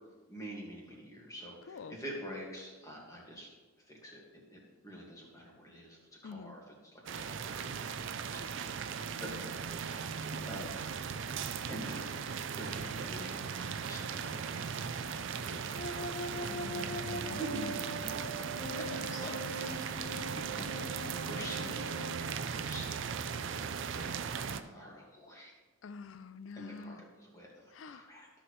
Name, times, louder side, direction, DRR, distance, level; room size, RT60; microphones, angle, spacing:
voice 1, 0.3-3.5 3.8-4.2 4.5-8.0 8.3-8.5 9.2-9.5 9.8-10.7 11.7-15.1 15.4-17.0 17.4-20.1 20.3-21.8 22.1-23.2 24.0-25.5 26.5-28.3, equal, 15° left, -3 dB, 1.8 m, -47 dB
voice 2, 1.7-2.0 6.2-6.6 10.2-10.5 16.4-18.0 19.0-19.2 25.8-27.0 27.7-28.0, left 4 dB, 65° left, 14 dB, 0.4 m, -46 dB
sound 1, 7.1-24.6, right 6 dB, 60° right, 0.4 m, -38 dB
sound 2, 15.8-22.2, equal, 40° left, 0.7 m, -42 dB
13.0 x 6.3 x 3.1 m, 1.3 s
head